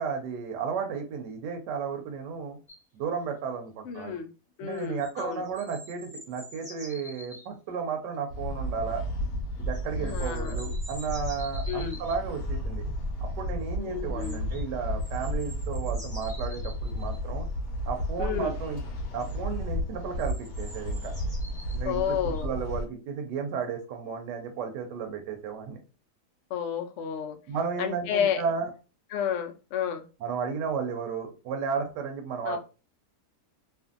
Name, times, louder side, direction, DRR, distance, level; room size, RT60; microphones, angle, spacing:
voice 1, 0.0-2.6 2.9-4.2 4.6-9.0 9.6-12.8 13.4-17.5 17.9-18.8 19.1-21.1 21.7-25.8 27.5-28.7 30.2-32.6, right 6 dB, 85° right, 3 dB, 1.2 m, -33 dB
sound 1, 2.7-2.8 4.7-7.5 9.7-12.2 14.2-14.6 15.0-17.2 18.8-18.9 19.2-19.3 20.2-21.8 22.3-22.4, equal, ahead, 1.1 m, -47 dB
voice 2, 3.9-4.3 4.6-5.4 10.0-10.6 11.7-12.0 13.8-14.4 18.2-18.5 21.8-22.5 26.5-27.4 27.8-28.4 29.1-30.0 32.4-32.6, left 8 dB, 90° left, 5 dB, 0.6 m, -31 dB
sound 2, 8.3-22.8, equal, 70° left, 0.9 m, -33 dB
2.7 x 2.5 x 2.4 m, 0.33 s
omnidirectional pair, 1.8 m